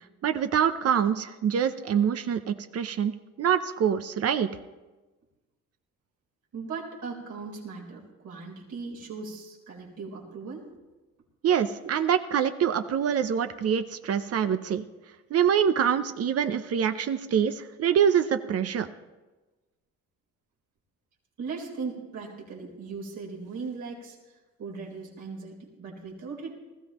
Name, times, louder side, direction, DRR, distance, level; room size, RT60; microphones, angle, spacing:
voice 1, 0.2-3.1 3.4-4.5 11.4-14.8 15.3-18.9, right 8 dB, 55° right, 10 dB, 0.7 m, -25 dB
voice 2, 6.5-10.7 21.4-24.2 24.6-26.5, right 4 dB, 70° right, -1 dB, 3.9 m, -38 dB
19.5 x 14.0 x 3.0 m, 1.2 s
supercardioid pair, 80°, 30 cm